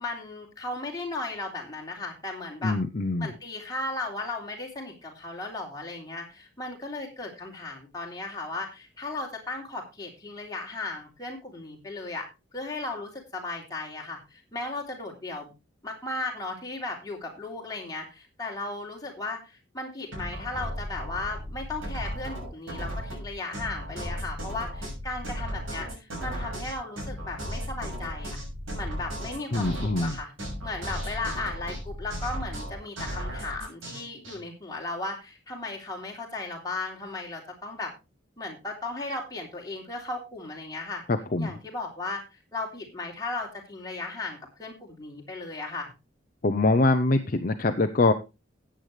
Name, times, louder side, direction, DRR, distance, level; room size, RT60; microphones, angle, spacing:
voice 1, 0.0-2.8 3.2-12.3 12.5-15.5 15.8-28.4 28.7-30.3 30.6-37.9 38.4-41.0 41.4-42.2 42.5-45.9, left 2 dB, 20° left, -1 dB, 3.2 m, -36 dB
voice 2, 2.6-3.3 29.5-30.2 41.1-41.5 46.4-48.1, left 2 dB, 45° left, 7 dB, 0.7 m, -24 dB
sound 1, 20.1-34.4, equal, 85° right, 6.5 m, -35 dB
14.0 x 8.9 x 3.3 m, 0.27 s
head